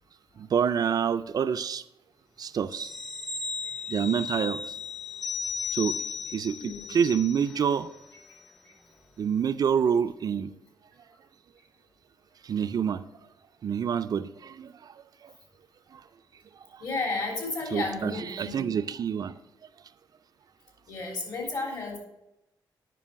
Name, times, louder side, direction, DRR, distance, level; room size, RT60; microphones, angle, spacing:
voice 1, 0.4-1.8 2.4-2.9 3.9-4.7 5.7-6.0 6.3-7.9 9.2-10.5 12.4-13.0 13.6-14.9 15.2-15.3 15.9-16.0 16.7-16.8 17.7-19.4, right 7 dB, 50° right, 11 dB, 0.4 m, -27 dB
sound 1, 2.7-7.8 8.2-8.3, left 5 dB, 5° left, 0.6 m, -35 dB
voice 2, 6.6-7.0 8.3-8.4 8.6-8.7 16.8-18.8 20.9-22.0, left 3 dB, 55° left, 0 dB, 3.4 m, -33 dB
9.8 x 5.3 x 5.7 m, 0.91 s
cardioid pair, 105°, 8 cm